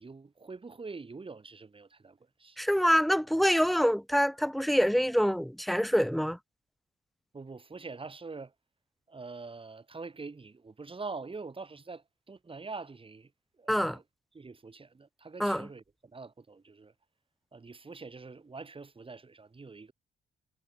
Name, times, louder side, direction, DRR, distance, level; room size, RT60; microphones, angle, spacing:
voice 1, 0.0-2.6 7.3-8.5 9.1-14.0 14.3-16.9 17.5-19.9, right 4 dB, 25° right, 4.3 m, -44 dB
voice 2, 2.6-6.4 13.7-14.0 15.4-15.6, equal, ahead, 0.3 m, -25 dB
cardioid pair, 90°, 20 cm